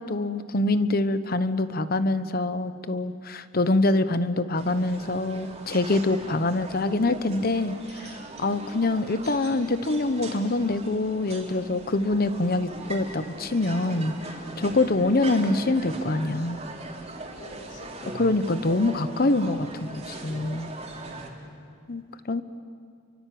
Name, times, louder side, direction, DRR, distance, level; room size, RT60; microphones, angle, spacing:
voice 1, 0.0-16.6 18.1-20.7 21.9-22.4, left 2 dB, 50° left, 12 dB, 1.1 m, -25 dB
sound 1, 4.6-21.3, right 2 dB, 35° right, 3.5 m, -40 dB
voice 2, 17.3-17.9 21.0-21.7, left 1 dB, 75° left, 0 dB, 6.0 m, -47 dB
30.0 x 24.0 x 7.8 m, 2.2 s
head